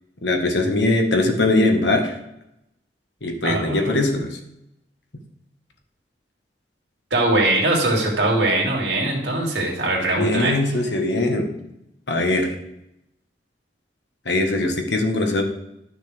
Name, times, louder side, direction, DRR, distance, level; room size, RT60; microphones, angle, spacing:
voice 1, 0.2-2.2 3.2-4.4 10.2-11.5 12.1-12.6 14.2-15.4, left 2 dB, 75° left, 3 dB, 1.4 m, -21 dB
voice 2, 3.4-3.9 7.1-10.5, right 2 dB, 80° right, -2 dB, 2.6 m, -21 dB
11.5 x 6.5 x 3.5 m, 0.84 s
head